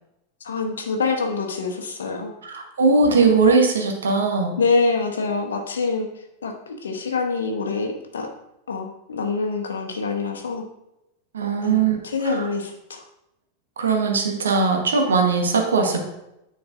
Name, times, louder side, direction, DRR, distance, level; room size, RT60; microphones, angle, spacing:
voice 1, 0.4-2.3 4.6-6.1 6.4-8.3 8.7-10.6 11.6-13.0, left 4 dB, 65° left, 3 dB, 1.0 m, -25 dB
voice 2, 2.4-4.6 11.3-12.0 12.3-12.4 13.8-16.0, right 4 dB, 70° right, 3 dB, 1.1 m, -19 dB
9.5 x 4.5 x 2.6 m, 0.87 s
figure-of-eight pair, 90°, 0 cm